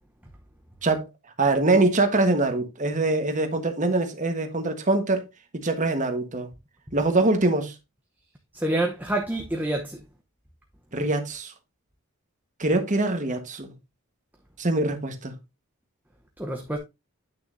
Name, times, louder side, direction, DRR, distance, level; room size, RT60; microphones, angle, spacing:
voice 1, 1.4-5.2 5.6-6.5 6.9-7.7 10.9-11.5 12.6-13.7 14.6-15.3, right 2 dB, 35° right, 1.3 m, -23 dB
voice 2, 8.5-10.0 16.4-16.8, right 1 dB, 10° right, 0.9 m, -27 dB
8.9 x 6.5 x 2.6 m
head